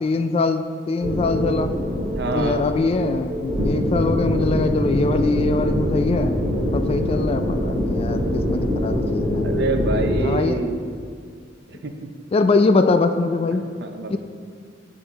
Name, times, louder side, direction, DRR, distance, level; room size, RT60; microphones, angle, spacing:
voice 1, 0.0-1.7 2.3-6.4 6.7-9.5 10.2-10.6 12.3-13.6 14.1-14.2, left 3 dB, 30° left, 8 dB, 0.3 m, -22 dB
sound 1, 1.0-10.3, equal, 30° right, 1.5 m, -24 dB
voice 2, 2.1-2.6 9.4-10.8 11.7-11.9 13.8-14.2, right 3 dB, 65° right, 6 dB, 0.6 m, -26 dB
11.0 x 3.8 x 4.0 m, 2.2 s
head